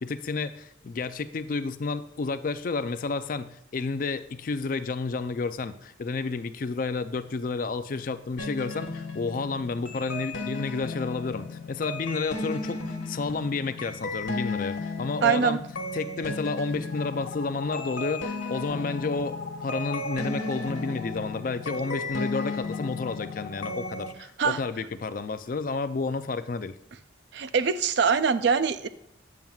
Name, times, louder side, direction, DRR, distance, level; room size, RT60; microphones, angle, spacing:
voice 1, 0.0-15.6 15.9-26.8, left 4 dB, 45° left, 12 dB, 0.4 m, -31 dB
sound 1, 8.4-24.1, left 3 dB, 80° left, 1.4 m, -34 dB
voice 2, 15.2-15.6 24.4-24.6 27.3-28.9, right 6 dB, 60° right, 13 dB, 0.4 m, -23 dB
9.1 x 7.2 x 2.3 m, 0.79 s
head